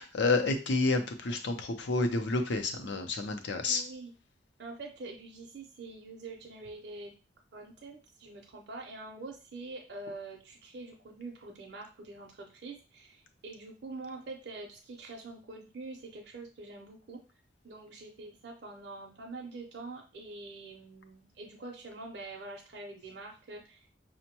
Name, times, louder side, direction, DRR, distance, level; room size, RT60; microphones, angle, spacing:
voice 1, 0.0-3.8, left 3 dB, 75° left, 6 dB, 0.6 m, -29 dB
voice 2, 3.7-4.1 4.6-7.1 7.5-17.2 17.6-23.9, right 3 dB, 65° right, 0 dB, 0.6 m, -45 dB
5.2 x 2.1 x 2.9 m, 0.34 s
head